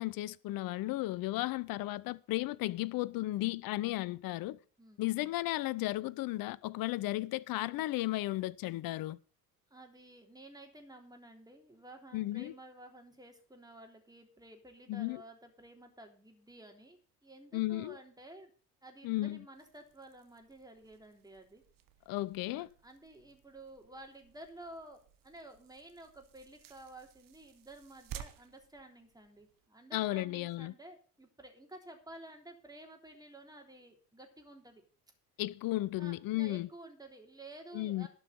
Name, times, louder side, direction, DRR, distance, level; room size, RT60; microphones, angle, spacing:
voice 1, 0.0-4.6 5.0-9.2 12.1-12.5 14.9-15.2 17.5-18.0 19.0-19.4 22.1-22.7 29.9-30.7 35.4-36.7 37.7-38.1, left 17 dB, 50° left, 0.7 m, -34 dB
voice 2, 9.7-18.5 18.8-21.6 22.5-34.8 36.0-38.1, right 1 dB, 10° right, 3.4 m, -53 dB
sound 1, 19.5-29.7, right 9 dB, 45° right, 1.2 m, -55 dB
12.0 x 5.6 x 7.9 m
hypercardioid pair, 65°, 46 cm